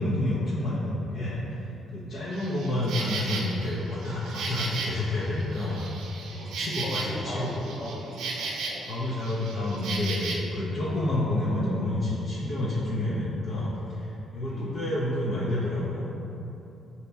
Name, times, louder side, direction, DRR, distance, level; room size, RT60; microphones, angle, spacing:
voice 1, 0.0-1.6 1.9-5.8 6.4-7.5 8.9-16.0, left 1 dB, 60° left, -9 dB, 0.6 m, -29 dB
Insect, 2.3-10.3, right 3 dB, 80° right, 0.5 m, -35 dB
voice 2, 6.7-8.9 14.5-14.8, left 1 dB, 45° left, -7 dB, 1.3 m, -39 dB
4.0 x 2.9 x 3.5 m, 3.0 s
cardioid pair, 90°, 0 cm